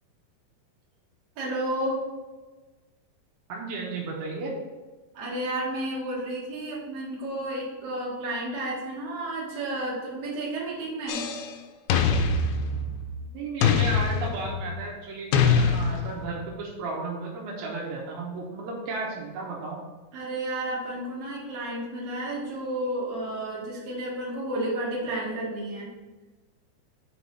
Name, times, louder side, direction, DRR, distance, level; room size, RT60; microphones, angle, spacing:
voice 1, 1.4-2.0 5.1-11.3 20.1-25.9, right 1 dB, 50° right, -6 dB, 3.0 m, -31 dB
voice 2, 3.5-4.5 13.3-19.8, right 3 dB, 80° right, -2 dB, 2.9 m, -34 dB
sound 1, 11.1-11.5 11.9-13.2 13.6-14.7 15.3-16.4, left 5 dB, 85° left, 2.5 m, -24 dB
6.3 x 4.6 x 5.6 m, 1.3 s
omnidirectional pair, 4.3 m